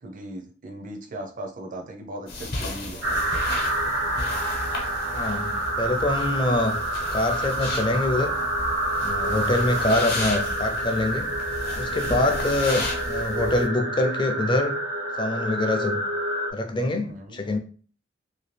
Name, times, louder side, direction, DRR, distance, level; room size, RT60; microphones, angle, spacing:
voice 1, 0.0-3.1 9.2-9.6 12.0-12.4 17.0-17.4, right 1 dB, 45° right, 0.6 m, -38 dB
sound 1, 2.3-13.7, left 2 dB, 60° left, 0.9 m, -34 dB
sound 2, 3.0-16.5, right 1 dB, 85° right, 1.1 m, -28 dB
voice 2, 5.1-6.8 7.1-8.3 9.0-11.3 11.8-14.7 15.2-16.0 16.5-17.6, left 2 dB, 25° left, 0.5 m, -25 dB
2.8 x 2.6 x 3.2 m
head